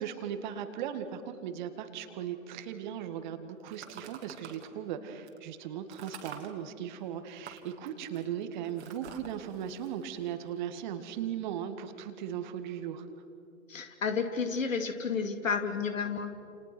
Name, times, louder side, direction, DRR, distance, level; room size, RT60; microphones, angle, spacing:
voice 1, 0.0-13.1, right 9 dB, 35° right, 9 dB, 2.0 m, -38 dB
sound 1, 3.7-4.7 5.3-5.4 5.9-6.5 7.3-10.8, right 7 dB, 50° right, 3.0 m, -48 dB
voice 2, 13.7-16.3, left 5 dB, 65° left, 7 dB, 2.9 m, -31 dB
29.5 x 29.0 x 6.2 m, 2.6 s
figure-of-eight pair, 125°, 42 cm